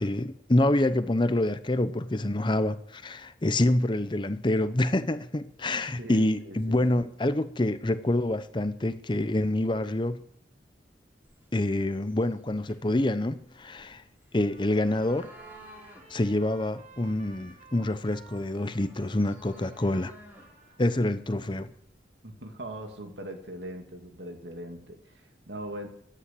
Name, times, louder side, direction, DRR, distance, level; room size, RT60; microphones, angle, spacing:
voice 1, 0.0-10.2 11.5-14.0 14.3-15.3 16.1-20.1 20.8-21.7, left 1 dB, 25° left, 0.7 m, -26 dB
voice 2, 6.0-7.0 22.2-25.9, right 1 dB, 75° right, 2.7 m, -41 dB
sound 1, 11.2-22.1, equal, 10° right, 4.0 m, -55 dB
Trumpet, 14.4-21.5, right 3 dB, 45° right, 3.7 m, -55 dB
14.5 x 10.0 x 8.4 m
head